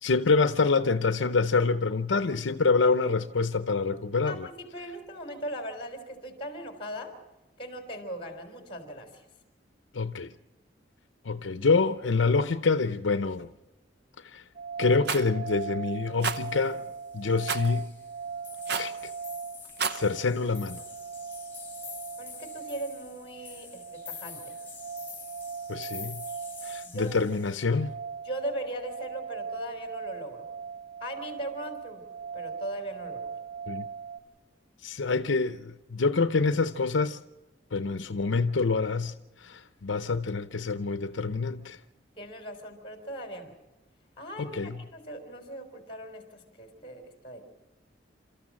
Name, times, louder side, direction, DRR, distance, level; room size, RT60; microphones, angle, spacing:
voice 1, 0.0-4.5 9.9-10.3 11.2-13.5 14.2-14.4 14.8-16.8 17.1-17.9 18.8-18.9 19.9-20.8 25.7-26.2 26.6-27.9 33.7-33.9 34.8-37.2 37.7-41.8 44.4-44.8, left 4 dB, 80° left, 0.7 m, -26 dB
voice 2, 4.3-7.1 7.6-9.3 22.2-23.8 24.1-24.5 26.9-27.2 28.2-30.4 31.0-32.0 32.3-33.3 42.2-43.5 44.2-47.5, right 1 dB, 30° left, 3.7 m, -39 dB
sound 1, 14.5-34.2, right 6 dB, 35° right, 1.7 m, -40 dB
Rattle, 15.0-15.3 16.2-16.4 17.5-17.7 18.7-19.0 19.6-20.0, right 5 dB, 60° right, 0.9 m, -29 dB
sound 2, 16.2-16.9 17.3-18.2 18.4-27.6, left 6 dB, 10° left, 4.3 m, -47 dB
28.5 x 13.5 x 7.5 m
head